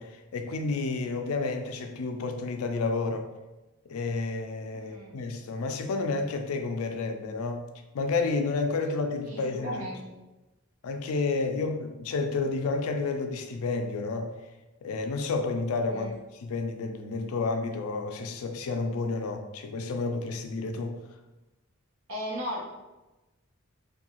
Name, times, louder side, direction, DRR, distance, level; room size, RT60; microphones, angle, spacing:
voice 1, 0.0-3.3 3.9-7.7 7.9-9.9 10.8-14.3 14.8-21.0, left 3 dB, 90° left, 0.4 m, -30 dB
voice 2, 4.7-5.1 9.2-10.1 15.9-16.1 22.1-22.7, equal, 90° right, 0.8 m, -36 dB
2.7 x 2.3 x 2.9 m
head